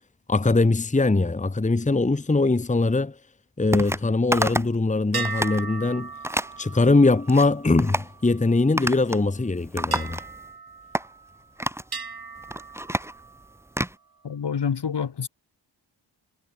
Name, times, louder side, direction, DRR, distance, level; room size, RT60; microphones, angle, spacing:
voice 1, 0.3-3.1 3.6-6.1 6.6-10.2, left 3 dB, 15° left, 1.2 m, -21 dB
sound 1, 3.7-4.0 4.3-4.8 5.1-5.6 6.2-6.5 7.1-7.5 7.8-8.1 8.8-9.3 9.5-10.5 10.9-11.1 11.6-11.9 12.4-14.0, right 1 dB, 5° right, 1.6 m, -28 dB
sound 2, 5.1-8.8 9.9-11.5 11.9-13.6, right 5 dB, 50° right, 7.7 m, -38 dB
voice 2, 14.2-15.3, left 7 dB, 60° left, 2.0 m, -27 dB
cardioid pair, 75°, 47 cm